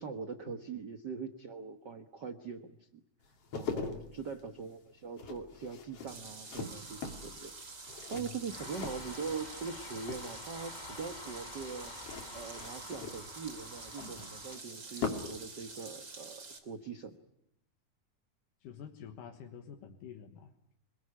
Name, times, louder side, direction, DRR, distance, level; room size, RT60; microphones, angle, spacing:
voice 1, 0.0-3.0 3.6-7.5 8.1-11.9 12.3-17.1, right 5 dB, 55° right, 8 dB, 1.3 m, -42 dB
sound 1, 3.2-9.7 10.0-10.6 11.9-15.4 15.7-15.9, left 4 dB, 50° left, 3.5 m, -42 dB
voice 2, 3.8-4.1 8.1-8.4 18.6-20.7, left 8 dB, 90° left, 3 dB, 3.1 m, -49 dB
sound 2, 6.1-16.6, right 4 dB, 35° right, 3.7 m, -48 dB
sound 3, 6.6-14.6, left 2 dB, 20° left, 1.1 m, -49 dB
27.0 x 20.5 x 9.9 m, 0.78 s
omnidirectional pair, 3.7 m